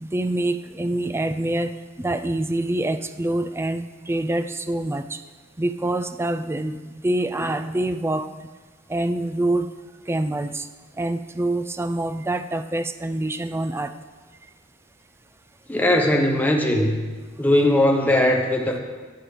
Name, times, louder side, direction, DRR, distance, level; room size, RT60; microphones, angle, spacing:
voice 1, 0.0-5.2 5.6-8.3 8.9-9.7 10.1-10.7 11.0-13.9, right 1 dB, 15° right, 10 dB, 0.3 m, -26 dB
voice 2, 15.7-17.1 17.4-18.8, left 1 dB, 10° left, 2 dB, 1.0 m, -19 dB
17.0 x 7.5 x 3.3 m, 1.4 s
head